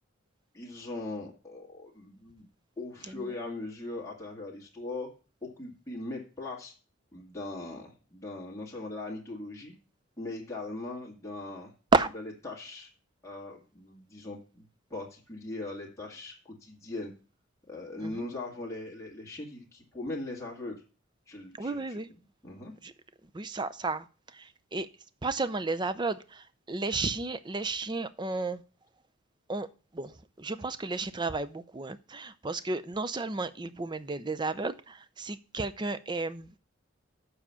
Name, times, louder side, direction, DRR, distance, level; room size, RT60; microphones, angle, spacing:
voice 1, 0.5-2.5 2.8-5.1 5.4-6.7 7.1-9.8 10.2-11.7 12.4-12.9 13.2-17.1 17.7-20.8 21.3-22.0 22.4-22.7, left 2 dB, 15° left, -3 dB, 2.0 m, -40 dB
voice 2, 21.5-22.1 22.8-22.9 23.2-24.9 25.2-28.6 29.5-29.7 29.9-36.6, right 3 dB, 20° right, 13 dB, 0.5 m, -32 dB
7.4 x 5.0 x 6.9 m, 0.35 s
head